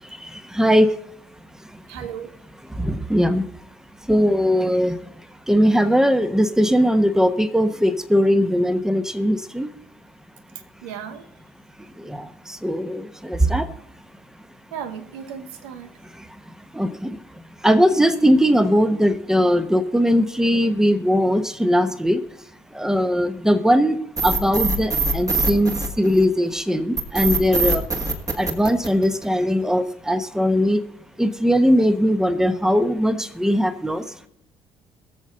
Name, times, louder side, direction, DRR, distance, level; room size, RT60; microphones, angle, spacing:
voice 1, 0.5-0.9 2.8-3.4 4.1-5.0 5.5-9.7 12.1-12.2 12.6-13.7 16.8-17.2 17.6-22.2 22.8-24.0 24.2-27.8 28.4-30.8 31.2-34.0, equal, 5° right, 1.0 m, -19 dB
voice 2, 1.9-2.3 10.8-11.3 14.7-15.9, right 8 dB, 70° right, 1.0 m, -35 dB
sound 1, 24.2-26.4 27.0-29.4, right 3 dB, 25° right, 1.8 m, -23 dB
22.0 x 7.4 x 3.8 m
figure-of-eight pair, 50°, 14 cm